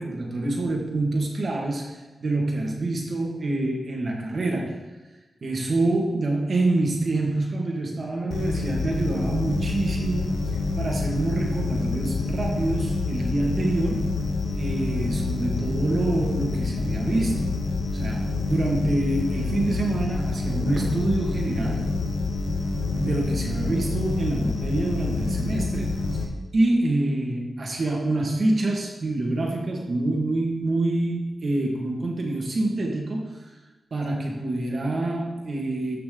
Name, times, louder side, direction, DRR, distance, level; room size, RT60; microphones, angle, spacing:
voice 1, 0.0-4.8 5.4-10.3 10.8-14.2 14.5-17.5 17.9-21.9 23.0-25.9 26.5-33.4 33.9-36.0, right 2 dB, 55° right, 0 dB, 1.9 m, -26 dB
sound 1, 8.3-26.2, left 3 dB, 85° left, 1.4 m, -27 dB
13.5 x 5.8 x 3.9 m, 1.2 s
wide cardioid pair, 100°, 0 cm